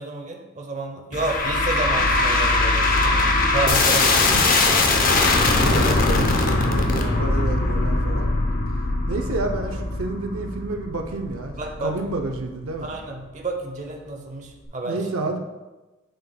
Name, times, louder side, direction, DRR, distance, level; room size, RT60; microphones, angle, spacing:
voice 1, 0.0-4.2 7.0-7.3 11.5-11.9 12.8-15.0, right 2 dB, 35° right, 2 dB, 0.7 m, -30 dB
sound 1, 1.1-12.4, left 2 dB, 40° left, 0.7 m, -21 dB
voice 2, 5.4-8.3 9.1-11.5 11.8-12.9 14.8-15.4, right 2 dB, 80° right, 4 dB, 0.6 m, -30 dB
6.8 x 6.6 x 2.2 m, 1.1 s
head